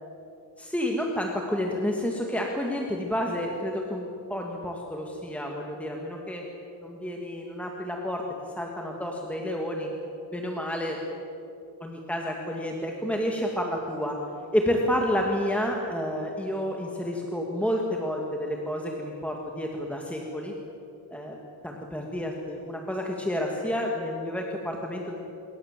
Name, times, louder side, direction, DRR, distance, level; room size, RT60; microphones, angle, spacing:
voice 1, 0.6-4.0 4.3-6.4 6.8-8.2 8.6-9.9 10.3-11.0 11.8-14.2 14.5-20.5 21.1-21.4 21.6-25.2, equal, 5° left, 0 dB, 2.3 m, -30 dB
27.0 x 23.5 x 7.7 m, 3.0 s
wide cardioid pair, 140°, 40 cm